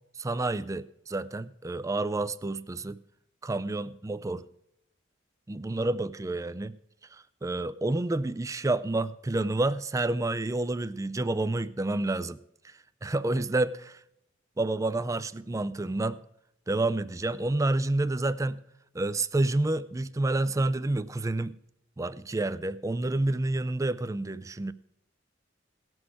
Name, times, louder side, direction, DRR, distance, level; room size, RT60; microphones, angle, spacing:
voice 1, 0.2-3.0 3.4-4.5 5.5-6.8 7.1-14.0 14.6-16.2 16.7-18.6 18.9-21.5 22.0-24.7, right 2 dB, 15° right, 0.4 m, -29 dB
17.5 x 6.2 x 4.7 m
head